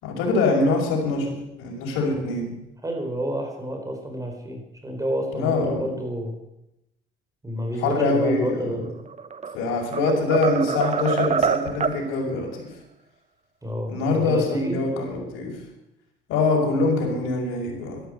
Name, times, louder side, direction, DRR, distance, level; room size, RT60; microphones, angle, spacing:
voice 1, 0.0-2.6 5.3-5.9 7.8-8.9 9.5-12.7 13.9-15.5 16.3-18.0, left 3 dB, 85° left, -1 dB, 5.7 m, -24 dB
voice 2, 2.8-6.4 7.4-8.8 13.6-14.8, right 1 dB, 15° right, 3 dB, 4.8 m, -29 dB
sound 1, 9.1-9.6 9.9-12.0, right 6 dB, 35° right, 1.1 m, -25 dB
13.0 x 12.5 x 8.1 m, 0.88 s
cardioid pair, 90°, 21 cm